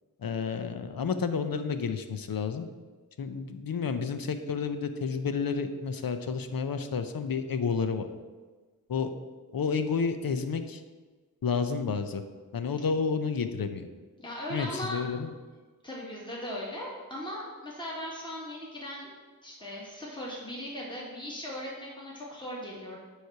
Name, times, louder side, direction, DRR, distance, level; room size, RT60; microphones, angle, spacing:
voice 1, 0.2-2.7 3.2-8.1 8.9-9.1 9.5-10.8 11.4-12.2 12.5-13.9 14.5-15.3, left 5 dB, 80° left, 9 dB, 0.6 m, -30 dB
voice 2, 14.2-15.1 15.8-19.1 19.4-23.0, equal, 15° left, -5 dB, 1.8 m, -38 dB
9.2 x 3.3 x 5.7 m, 1.4 s
wide cardioid pair, 45°, 35 cm